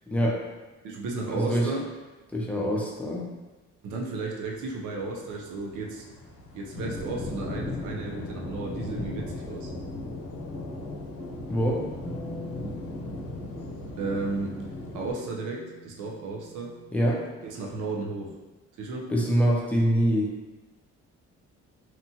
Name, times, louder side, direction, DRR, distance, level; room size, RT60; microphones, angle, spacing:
voice 1, 0.1-0.4 1.3-1.7 2.3-3.3 11.5-11.8 16.9-17.2 19.1-20.3, equal, 5° left, -3 dB, 0.6 m, -24 dB
voice 2, 0.8-1.9 3.8-6.0 6.5-9.7 14.0-14.6 14.9-16.8 17.4-18.4 18.8-19.1, right 3 dB, 80° right, -1 dB, 0.6 m, -33 dB
sound 1, 4.4-15.1, left 2 dB, 80° left, 0.7 m, -37 dB
Bass guitar, 12.0-18.3, left 1 dB, 20° left, 1.1 m, -46 dB
2.9 x 2.2 x 2.7 m, 1.2 s
cardioid pair, 90°, 30 cm